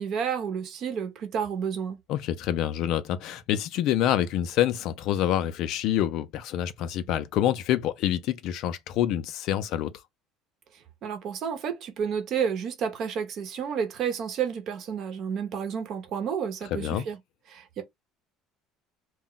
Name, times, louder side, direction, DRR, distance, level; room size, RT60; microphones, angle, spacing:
voice 1, 0.0-2.0 11.0-17.2 17.5-17.8, right 7 dB, 55° right, 0.8 m, -30 dB
voice 2, 2.1-9.9 16.7-17.0, left 11 dB, 65° left, 0.3 m, -27 dB
2.2 x 2.0 x 3.7 m
supercardioid pair, 115°, 0 cm